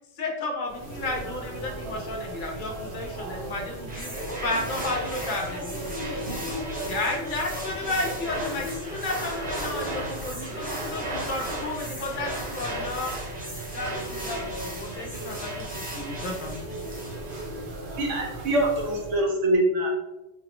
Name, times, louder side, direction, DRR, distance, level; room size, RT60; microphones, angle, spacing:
voice 1, 0.1-4.1 4.4-5.8 6.9-13.2 13.7-16.6, left 2 dB, 55° left, 0 dB, 0.6 m, -32 dB
Room noise, 0.6-19.3, right 1 dB, 50° right, 0.8 m, -37 dB
sound 1, 3.9-17.5, right 1 dB, 10° right, 0.8 m, -36 dB
voice 2, 4.1-8.2, equal, 20° left, -5 dB, 0.3 m, -39 dB
voice 3, 18.0-19.9, right 1 dB, 80° right, -2 dB, 1.1 m, -24 dB
3.6 x 2.0 x 2.9 m, 1.0 s
omnidirectional pair, 1.3 m